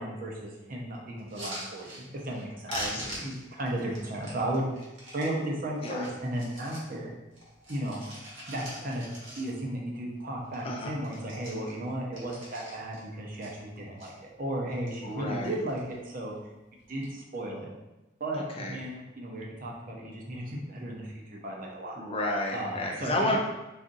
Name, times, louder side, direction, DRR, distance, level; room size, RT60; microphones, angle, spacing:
voice 1, 0.0-4.7 5.1-7.1 7.7-8.0 8.5-9.0 9.4-16.3 16.9-17.7 18.2-22.0 22.5-23.1, right 1 dB, 40° right, -2 dB, 0.6 m, -35 dB
Pill Bottle, 1.2-2.4 2.7-5.3 5.8-6.9 7.3-9.8 10.1-10.2 10.4-10.7 11.0-13.0 13.4-14.1 14.6-15.1 15.4-16.0 16.8-17.1, right 1 dB, 65° right, 1.1 m, -43 dB
voice 2, 2.7-3.3 5.8-6.1 10.6-11.0 15.0-15.5 18.3-18.8 21.9-23.4, left 1 dB, 25° left, 0 dB, 0.4 m, -31 dB
3.9 x 2.5 x 2.5 m, 1.0 s
head